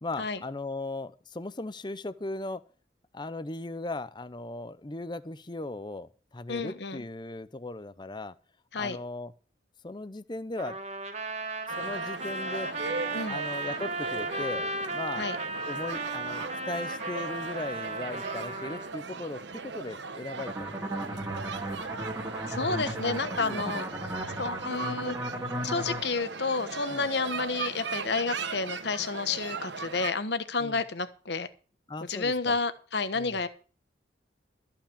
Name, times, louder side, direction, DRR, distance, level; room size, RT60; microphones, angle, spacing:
voice 1, 0.0-2.6 3.1-8.3 8.7-9.3 9.8-10.8 11.8-12.7 13.3-15.3 15.6-21.2 23.5-23.7 26.9-27.1 30.6-30.8 31.9-32.6 33.1-33.4, left 2 dB, 25° left, 0.6 m, -38 dB
voice 2, 6.5-7.0 8.7-9.0 13.1-13.4 15.2-15.4 22.5-23.8 24.4-25.2 25.6-31.5 32.1-33.5, left 4 dB, 65° left, 1.2 m, -30 dB
Trumpet, 10.6-18.9, right 2 dB, 35° right, 1.5 m, -35 dB
sound 1, 11.7-30.1, right 4 dB, 75° right, 1.1 m, -38 dB
sound 2, 20.4-26.0, right 1 dB, 15° right, 2.2 m, -35 dB
14.0 x 5.8 x 8.6 m
head